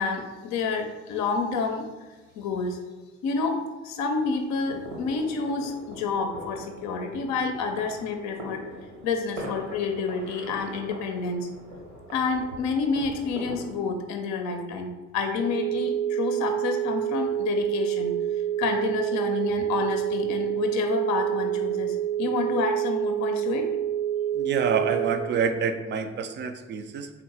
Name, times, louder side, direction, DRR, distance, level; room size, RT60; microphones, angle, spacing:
voice 1, 0.0-1.8 2.4-2.8 3.2-8.6 9.0-11.5 12.1-18.1 18.6-23.7, left 4 dB, 50° left, 4 dB, 0.5 m, -29 dB
sound 1, 4.5-13.7, equal, 70° right, 1.0 m, -41 dB
sound 2, 15.4-25.2, right 10 dB, 15° left, 0.7 m, -27 dB
voice 2, 24.3-27.1, right 6 dB, 30° right, 8 dB, 0.4 m, -27 dB
3.7 x 2.1 x 4.1 m, 1.2 s
figure-of-eight pair, 50°, 36 cm